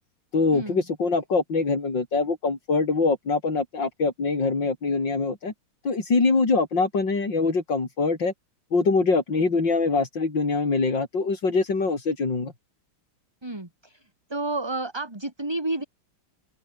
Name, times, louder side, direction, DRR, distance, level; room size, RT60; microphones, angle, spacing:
voice 1, 0.3-5.5 5.8-8.3 8.7-12.5, left 4 dB, 60° left, 4.8 m, -24 dB
voice 2, 13.4-14.0 14.3-15.8, right 2 dB, 10° right, 2.6 m, -30 dB
omnidirectional pair, 2.3 m